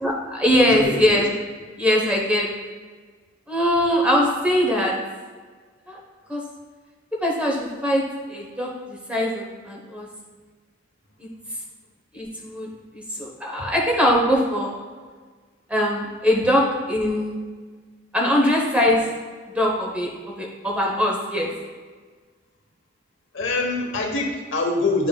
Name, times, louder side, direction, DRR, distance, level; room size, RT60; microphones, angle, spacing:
voice 1, 0.0-1.3 1.8-2.5 3.5-4.9 5.9-6.0 6.3-6.4 7.2-8.0 8.3-10.1 11.2-11.3 12.1-14.8 15.7-17.4 18.1-19.1 19.5-21.5, equal, 5° right, -1 dB, 0.9 m, -22 dB
voice 2, 0.7-1.2 13.6-13.7 23.3-25.1, left 2 dB, 70° left, 1 dB, 1.1 m, -24 dB
9.6 x 5.6 x 2.3 m, 1.5 s
head